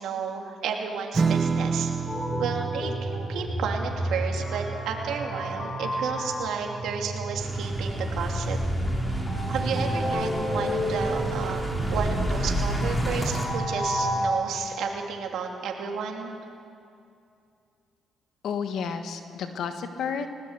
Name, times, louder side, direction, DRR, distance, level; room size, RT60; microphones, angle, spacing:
voice 1, 0.0-1.9 2.4-8.6 9.5-16.3, right 6 dB, 75° right, 1 dB, 2.7 m, -32 dB
Strum, 1.1-8.0, right 5 dB, 35° right, 1.2 m, -31 dB
sound 1, 2.1-14.3, right 1 dB, 30° left, 4.2 m, -31 dB
sound 2, 7.4-13.5, equal, 10° left, 4.7 m, -30 dB
voice 2, 18.4-20.3, left 6 dB, 70° left, 7 dB, 1.6 m, -31 dB
20.0 x 18.0 x 8.2 m, 2.5 s
cardioid pair, 80°, 0 cm